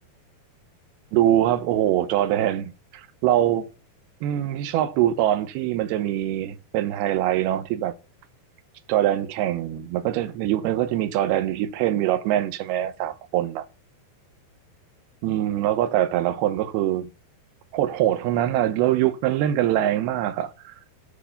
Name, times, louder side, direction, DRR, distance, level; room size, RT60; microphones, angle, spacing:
voice 1, 1.1-3.7 4.2-7.9 8.9-13.6 15.2-17.1 17.7-20.7, right 12 dB, 85° right, 2.8 m, -23 dB
9.1 x 5.0 x 6.8 m
omnidirectional pair, 4.4 m